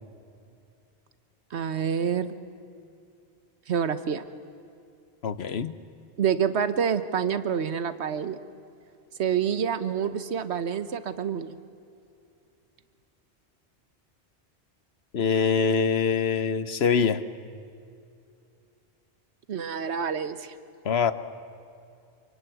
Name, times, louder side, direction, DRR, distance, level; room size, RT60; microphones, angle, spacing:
voice 1, 1.5-2.3 3.7-4.2 6.2-8.4 9.2-11.6 19.5-20.5, right 7 dB, 90° right, 12 dB, 1.3 m, -27 dB
voice 2, 5.2-5.7 15.1-17.2 20.8-21.1, left 6 dB, 70° left, 13 dB, 1.2 m, -24 dB
26.5 x 24.0 x 9.3 m, 2.5 s
omnidirectional pair, 1.1 m